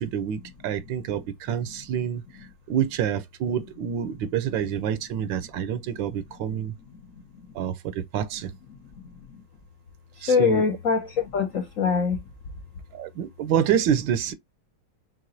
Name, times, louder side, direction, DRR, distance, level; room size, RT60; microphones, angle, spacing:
voice 1, 0.0-2.2 2.7-6.7 7.5-8.5 10.2-10.6 12.9-14.3, right 9 dB, 75° right, 1.2 m, -27 dB
voice 2, 0.6-1.1 1.6-1.8 2.1-2.4 4.3-4.4 5.2-5.3 5.9-6.2 6.4-6.6 6.9-7.5 8.4-9.4 10.1-12.3, left 5 dB, 65° left, 0.8 m, -27 dB
4.8 x 3.7 x 2.5 m
omnidirectional pair, 2.2 m